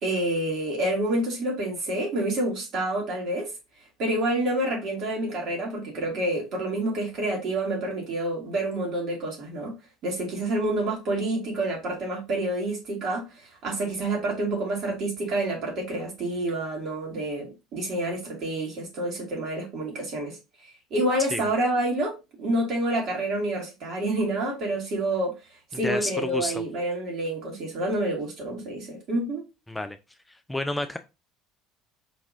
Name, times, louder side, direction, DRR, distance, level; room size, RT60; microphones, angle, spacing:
voice 1, 0.0-3.5 4.0-9.7 10.0-13.2 13.6-20.4 20.9-25.3 25.8-29.4, right 1 dB, 45° right, 1.8 m, -28 dB
voice 2, 25.8-26.6 29.7-30.0 30.3-31.0, left 2 dB, 10° left, 0.3 m, -30 dB
4.5 x 3.0 x 2.6 m
figure-of-eight pair, 60°, 0 cm